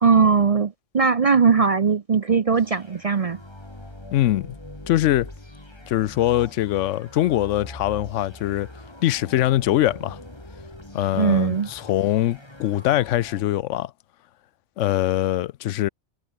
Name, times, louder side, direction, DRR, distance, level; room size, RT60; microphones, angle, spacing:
voice 1, 0.0-3.4 11.1-11.7, right 5 dB, 40° right, 0.5 m, -19 dB
sound 1, 2.5-13.5, left 1 dB, 20° left, 3.3 m, -42 dB
voice 2, 4.1-4.6 4.9-5.3 5.9-8.7 9.0-10.2 10.9-13.9 14.8-15.9, left 14 dB, 85° left, 0.9 m, -22 dB
omnidirectional pair, 1.2 m